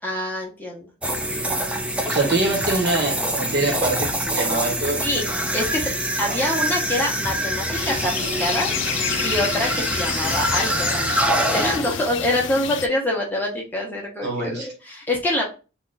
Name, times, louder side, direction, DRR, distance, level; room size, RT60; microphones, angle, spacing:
voice 1, 0.0-0.9 5.0-5.9 6.2-8.7 9.2-15.4, left 1 dB, 10° left, 0.9 m, -25 dB
sound 1, 1.0-11.9, right 1 dB, 5° right, 0.4 m, -25 dB
voice 2, 2.1-5.0 6.2-6.3 14.2-14.7, right 2 dB, 55° right, 1.2 m, -24 dB
sound 2, 7.8-12.9, left 9 dB, 65° left, 0.3 m, -29 dB
3.4 x 2.4 x 4.0 m
head